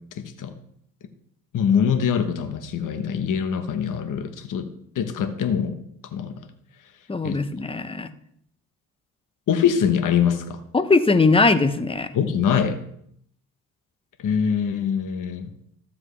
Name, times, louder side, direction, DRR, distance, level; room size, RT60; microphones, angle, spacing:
voice 1, 0.1-0.5 1.5-4.7 4.9-6.5 7.2-7.4 9.5-10.6 12.1-12.8 14.2-15.5, left 7 dB, 60° left, 7 dB, 1.1 m, -23 dB
voice 2, 7.1-8.1 10.7-12.1, left 3 dB, 15° left, 10 dB, 0.7 m, -20 dB
13.5 x 7.4 x 3.3 m, 0.68 s
cardioid pair, 95°, 35 cm